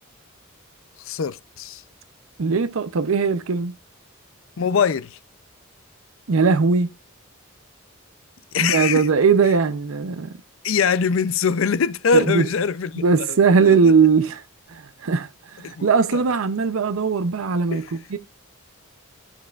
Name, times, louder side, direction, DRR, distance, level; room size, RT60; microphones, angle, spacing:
voice 1, 1.1-1.8 4.6-5.2 8.5-9.1 10.6-13.0 13.3-13.4 13.6-13.9 15.6-16.2 17.7-17.8, left 6 dB, 70° left, 0.5 m, -23 dB
voice 2, 2.4-3.7 6.3-6.9 8.6-10.3 12.1-12.5 13.0-14.4 14.7-18.2, right 5 dB, 80° right, 0.6 m, -19 dB
12.5 x 7.2 x 2.4 m
head